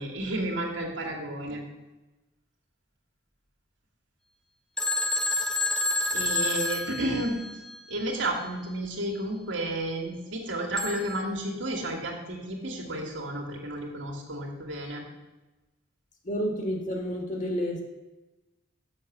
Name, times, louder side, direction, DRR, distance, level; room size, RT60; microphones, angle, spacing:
voice 1, 0.0-1.6 5.3-5.6 6.1-7.4 7.9-15.0, right 1 dB, 70° right, 1 dB, 1.9 m, -32 dB
Telephone, 4.8-7.8 10.8-11.2, left 2 dB, 5° left, 0.4 m, -29 dB
voice 2, 16.2-17.8, equal, 40° left, 2 dB, 1.5 m, -30 dB
6.5 x 6.5 x 7.2 m, 1.1 s
head